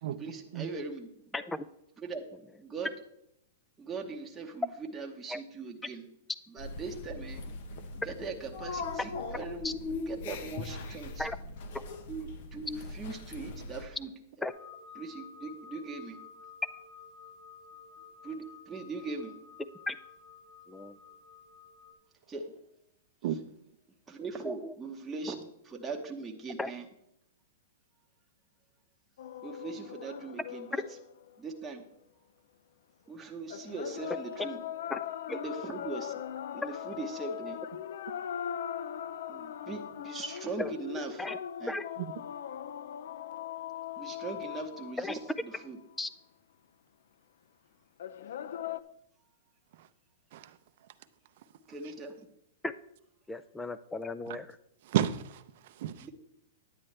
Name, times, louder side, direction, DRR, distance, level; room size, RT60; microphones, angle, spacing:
voice 1, 0.1-1.4 2.0-2.3 2.6-3.0 3.8-6.1 6.5-7.4 7.9-11.3 12.1-14.4 14.9-16.2 18.2-19.4 22.3-22.5 23.2-23.4 24.1-26.9 29.4-31.0 31.4-31.8 33.1-34.6 35.3-36.1 36.5-37.6 39.3-41.3 41.6-41.8 44.0-45.8 51.7-52.2 56.0-56.1, right 4 dB, 10° right, 1.0 m, -40 dB
voice 2, 1.3-1.6 5.3-5.4 9.6-9.7 11.2-11.4 11.7-11.8 14.4-14.5 19.9-20.0 20.7-21.0 24.5-24.7 26.6-26.7 30.7-30.8 34.9-35.0 35.3-35.4 40.6-40.7 41.2-41.4 41.7-41.8 45.0-45.2 46.0-46.1 52.6-52.7 53.3-54.6, left 2 dB, 5° left, 0.4 m, -35 dB
sound 1, 6.6-13.9, left 3 dB, 55° left, 1.0 m, -40 dB
sound 2, 14.5-21.9, left 6 dB, 35° left, 3.4 m, -52 dB
sound 3, 29.2-31.7 33.5-45.8 48.0-48.8, left 10 dB, 70° left, 0.4 m, -40 dB
voice 3, 54.8-56.1, right 11 dB, 55° right, 0.6 m, -32 dB
9.8 x 9.3 x 3.3 m
hypercardioid pair, 150°, 0 cm